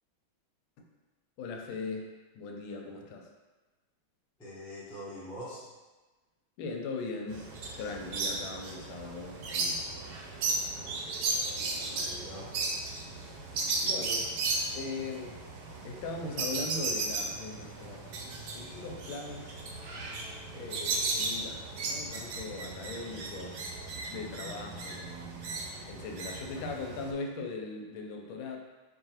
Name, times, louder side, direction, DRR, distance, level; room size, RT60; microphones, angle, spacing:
voice 1, 1.4-2.1 2.4-3.2 6.6-7.5 7.8-9.9 10.8-10.9 13.8-14.3 14.7-15.4 15.8-18.0 18.5-19.5 20.5-23.6 24.1-25.0 25.9-28.6, left 3 dB, 90° left, 2 dB, 1.4 m, -39 dB
voice 2, 4.4-5.6 11.5-12.5 20.7-20.8, equal, 5° left, -9 dB, 0.4 m, -44 dB
sound 1, 7.3-27.1, right 3 dB, 70° right, 0.9 m, -35 dB
4.7 x 2.5 x 2.9 m, 1.2 s
omnidirectional pair, 2.2 m